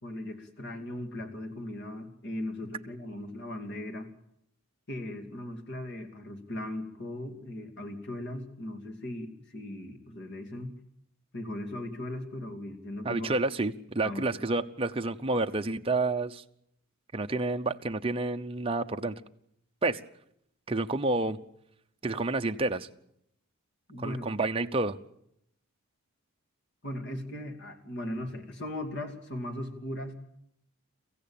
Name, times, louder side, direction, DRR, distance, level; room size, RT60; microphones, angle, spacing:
voice 1, 0.0-4.1 4.9-10.7 11.3-13.3 14.0-14.3 23.9-24.2 26.8-30.1, left 1 dB, 50° left, 5 dB, 2.6 m, -38 dB
voice 2, 13.0-16.4 17.1-19.2 19.8-20.0 20.7-21.4 22.0-22.9 24.0-25.0, right 2 dB, 25° right, 5 dB, 0.8 m, -29 dB
24.5 x 15.5 x 8.8 m, 0.78 s
head